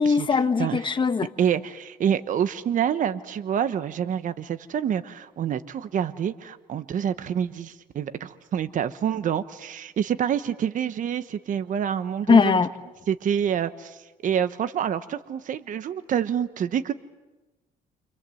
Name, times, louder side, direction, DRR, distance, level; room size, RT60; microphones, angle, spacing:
voice 1, 0.0-1.3 12.3-12.7, left 5 dB, 30° left, 10 dB, 1.2 m, -20 dB
voice 2, 1.4-12.6 13.1-16.9, right 9 dB, 50° right, 11 dB, 1.1 m, -27 dB
29.5 x 26.0 x 7.8 m, 1.1 s
cardioid pair, 110°, 17 cm